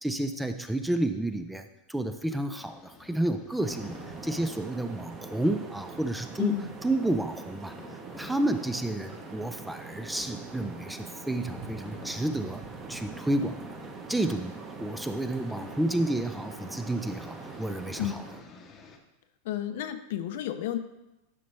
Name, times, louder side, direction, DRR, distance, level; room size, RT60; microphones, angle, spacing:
voice 1, 0.0-4.0 4.2-6.5 6.8-7.8 8.2-12.6 12.9-13.8 14.1-18.2, right 1 dB, 5° right, 8 dB, 0.4 m, -30 dB
sound 1, 2.5-19.0, left 3 dB, 25° left, 0.8 m, -53 dB
sound 2, 3.6-18.4, right 3 dB, 20° right, 0.9 m, -43 dB
voice 2, 6.4-6.7 18.0-18.2 19.4-20.8, left 12 dB, 65° left, 10 dB, 0.7 m, -31 dB
11.5 x 5.3 x 3.3 m, 0.96 s
supercardioid pair, 160°, 0 cm